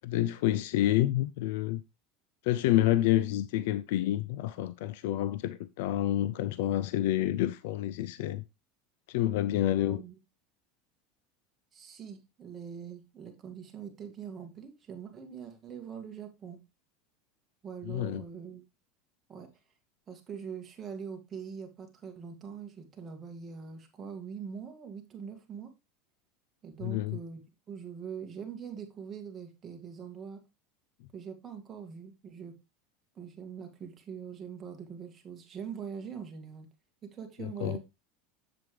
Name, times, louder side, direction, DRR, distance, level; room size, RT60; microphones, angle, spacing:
voice 1, 0.0-1.8 2.4-8.4 9.1-10.0 17.9-18.2 26.8-27.2 37.4-37.8, left 13 dB, 75° left, 0.4 m, -28 dB
voice 2, 9.7-10.1 11.7-16.6 17.6-18.6 19.3-19.5 20.1-25.7 26.6-27.4 27.7-30.4 31.1-32.6 33.2-36.7 37.0-37.8, right 7 dB, 25° right, 2.1 m, -43 dB
7.7 x 7.6 x 3.3 m
supercardioid pair, 130°, 0 cm